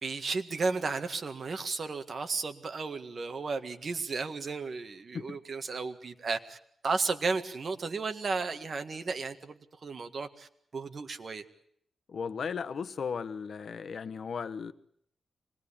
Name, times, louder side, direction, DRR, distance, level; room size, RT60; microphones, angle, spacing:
voice 1, 0.0-6.6 6.8-11.4, right 4 dB, 45° right, 7 dB, 1.8 m, -34 dB
voice 2, 12.1-14.7, left 6 dB, 60° left, 11 dB, 1.1 m, -36 dB
25.5 x 19.5 x 8.6 m, 0.68 s
wide cardioid pair, 115°, 0 cm